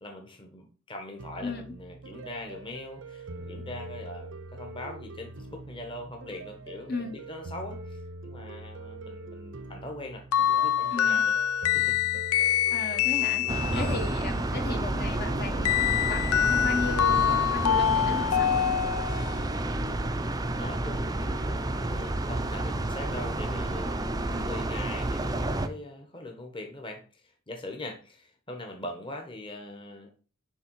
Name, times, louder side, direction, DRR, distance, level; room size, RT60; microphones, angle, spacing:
voice 1, 0.0-11.3 11.7-12.0 13.7-14.1 19.5-19.9 20.5-30.1, left 1 dB, 25° left, 3 dB, 1.1 m, -41 dB
sound 1, 1.2-17.9, right 2 dB, 60° right, 0.7 m, -43 dB
voice 2, 1.4-1.7 6.9-7.1 10.9-11.2 12.7-13.5 13.7-18.8 24.3-24.6, left 3 dB, 45° left, 4 dB, 1.1 m, -35 dB
sound 2, 10.3-14.1 15.6-19.4, left 10 dB, 85° left, 0.4 m, -25 dB
sound 3, 13.5-25.7, right 2 dB, 15° right, 0.5 m, -30 dB
10.5 x 3.5 x 4.6 m, 0.37 s
head